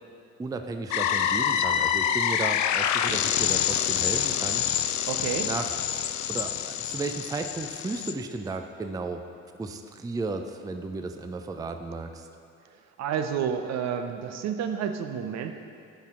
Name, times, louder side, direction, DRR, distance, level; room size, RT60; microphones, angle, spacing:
voice 1, 0.4-4.6 5.4-5.7 6.3-9.2 9.6-12.3, right 3 dB, 10° right, 6 dB, 0.4 m, -34 dB
sound 1, 0.9-8.1, left 9 dB, 65° left, 0.5 m, -26 dB
voice 2, 5.0-5.5 13.0-15.5, right 8 dB, 60° right, 7 dB, 0.6 m, -30 dB
10.0 x 5.7 x 3.7 m, 2.4 s
supercardioid pair, 80°, 30 cm